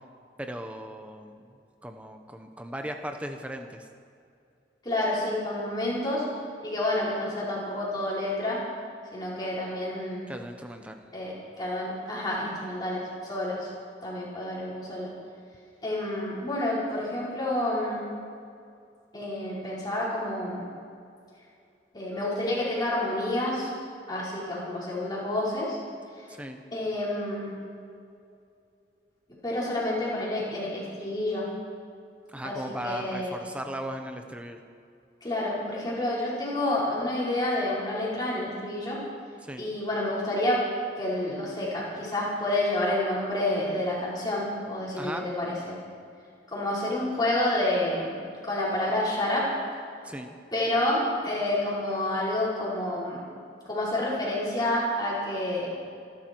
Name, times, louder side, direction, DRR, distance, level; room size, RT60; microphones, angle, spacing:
voice 1, 0.4-1.4 1.8-3.9 10.3-11.0 26.3-26.6 32.3-34.6 39.4-39.6 45.0-45.3 50.0-50.4, equal, 5° right, 5 dB, 0.8 m, -37 dB
voice 2, 4.8-6.2 6.6-8.6 9.1-10.3 11.1-13.7 14.0-15.1 15.8-18.0 19.1-20.6 21.9-23.7 24.1-25.8 26.7-27.5 29.4-31.4 32.4-33.3 35.2-39.0 39.6-40.6 41.0-45.8 46.5-48.1 48.4-49.5 50.5-53.2 53.7-55.7, left 1 dB, 20° left, -7 dB, 4.8 m, -29 dB
26.5 x 12.0 x 4.6 m, 2.4 s
head